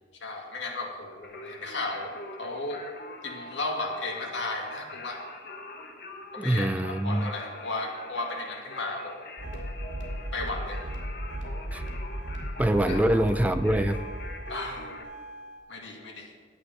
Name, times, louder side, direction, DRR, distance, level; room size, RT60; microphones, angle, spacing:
voice 1, 0.2-2.1 2.4-2.8 3.2-5.2 6.3-9.3 10.3-10.8 12.9-13.0 14.5-14.9 15.7-16.3, left 2 dB, 90° left, 1 dB, 2.0 m, -34 dB
Singing, 1.2-15.0, left 2 dB, 55° left, 1.2 m, -43 dB
voice 2, 6.4-7.3 11.7-11.8 12.6-14.0, right 1 dB, 10° right, 9 dB, 0.3 m, -24 dB
sound 1, 9.4-15.6, right 1 dB, 85° right, 2.7 m, -36 dB
11.0 x 8.4 x 5.7 m, 1.5 s
head